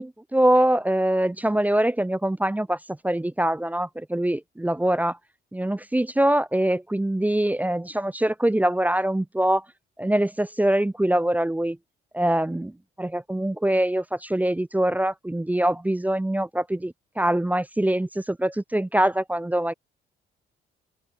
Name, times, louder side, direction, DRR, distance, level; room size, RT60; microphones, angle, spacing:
voice 1, 0.0-2.8 3.0-5.2 5.5-9.6 10.0-11.8 12.1-12.7 13.0-19.7, right 1 dB, 10° right, 0.6 m, -23 dB
open air
cardioid pair, 90°, 20 cm